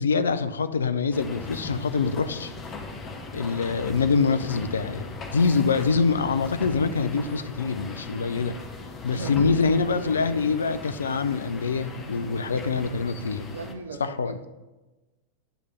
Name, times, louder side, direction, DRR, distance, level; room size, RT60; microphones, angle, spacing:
voice 1, 0.0-2.5 3.3-5.0 5.3-8.6 9.0-13.6 14.0-14.4, left 5 dB, 70° left, 11 dB, 0.3 m, -25 dB
sound 1, 1.1-13.7, left 3 dB, 25° left, 0.8 m, -38 dB
voice 2, 9.1-9.6 9.9-10.1 13.5-14.5, right 3 dB, 70° right, 8 dB, 0.6 m, -38 dB
9.0 x 3.3 x 5.2 m, 1.1 s
figure-of-eight pair, 90°, 0 cm